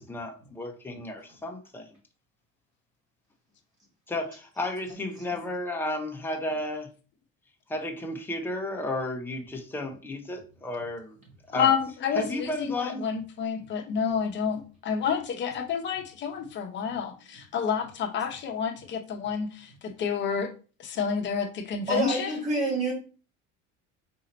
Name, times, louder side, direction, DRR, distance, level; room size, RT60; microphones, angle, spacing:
voice 1, 0.0-1.9 4.1-6.9 7.7-11.2 11.5-11.7 12.2-13.0, left 1 dB, 5° left, 3 dB, 0.6 m, -33 dB
voice 2, 11.5-20.5 20.8-22.3, left 7 dB, 40° left, 3 dB, 0.8 m, -29 dB
voice 3, 21.9-22.9, right 2 dB, 25° right, -2 dB, 2.1 m, -28 dB
4.3 x 2.8 x 3.8 m, 0.35 s
cardioid pair, 155°, 29 cm